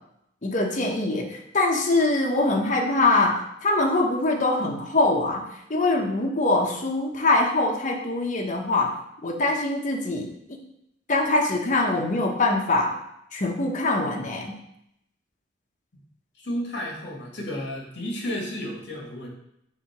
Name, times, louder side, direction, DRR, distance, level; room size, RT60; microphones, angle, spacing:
voice 1, 0.4-9.0 9.2-10.3 11.1-13.0 13.3-14.5, left 2 dB, 40° left, 1 dB, 1.1 m, -23 dB
voice 2, 16.4-19.3, equal, 65° left, -2 dB, 2.0 m, -32 dB
7.1 x 2.9 x 5.9 m, 0.78 s
head